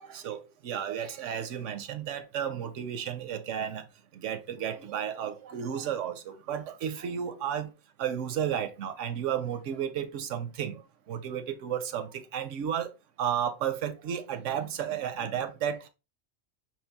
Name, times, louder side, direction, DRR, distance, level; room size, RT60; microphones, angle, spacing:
voice 1, 0.0-3.8 4.1-7.7 8.0-10.8 11.1-12.9 13.2-15.9, right 9 dB, 80° right, 1.0 m, -33 dB
4.6 x 3.3 x 3.4 m
omnidirectional pair, 1.3 m